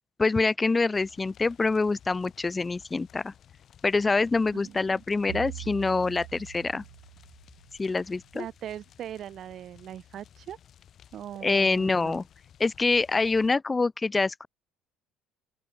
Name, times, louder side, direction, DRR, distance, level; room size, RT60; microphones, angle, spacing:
voice 1, 0.2-3.3 3.8-6.8 7.8-8.5 11.4-12.2 12.6-14.5, left 3 dB, 20° left, 0.4 m, -25 dB
sound 1, 0.9-13.5, left 9 dB, 50° left, 2.2 m, -56 dB
voice 2, 4.5-5.0 8.3-10.6 11.1-12.2, right 10 dB, 55° right, 0.7 m, -40 dB
sound 2, 5.3-8.0, right 30 dB, 90° right, 0.6 m, -43 dB
open air
supercardioid pair, 85°, 0 cm